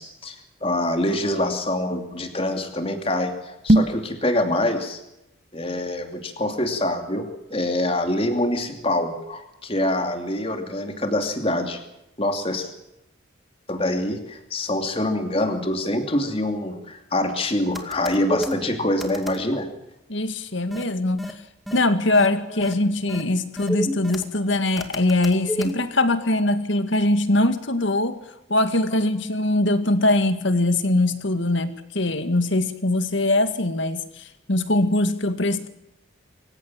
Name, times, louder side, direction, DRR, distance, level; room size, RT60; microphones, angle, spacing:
voice 1, 0.0-5.0 5.5-11.8 12.2-12.7 13.7-19.7 20.7-20.8 22.5-22.6, left 1 dB, 30° left, 5 dB, 2.8 m, -25 dB
sound 1, 3.6-4.1, right 1 dB, 35° right, 0.9 m, -18 dB
sound 2, 17.7-18.5 19.0-19.4 20.7-20.8 21.2-21.3 21.7-21.8 22.1-22.3 22.6-22.7 23.1-23.2 23.6-24.2 24.8-25.7, equal, ahead, 2.1 m, -29 dB
voice 2, 20.1-21.2 21.7-28.2 28.5-35.7, left 2 dB, 65° left, 10 dB, 2.1 m, -22 dB
26.0 x 16.0 x 7.6 m, 0.85 s
head